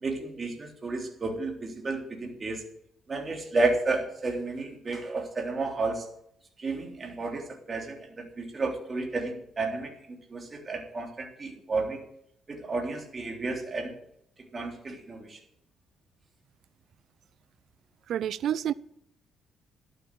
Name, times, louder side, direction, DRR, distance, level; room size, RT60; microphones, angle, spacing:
voice 1, 0.0-2.6 3.1-6.1 6.6-9.9 10.3-12.0 12.5-13.9 14.5-15.4, right 3 dB, 35° right, 3.5 m, -32 dB
voice 2, 18.1-18.7, right 10 dB, 70° right, 0.6 m, -28 dB
12.0 x 8.9 x 7.7 m
cardioid pair, 90°, 0 cm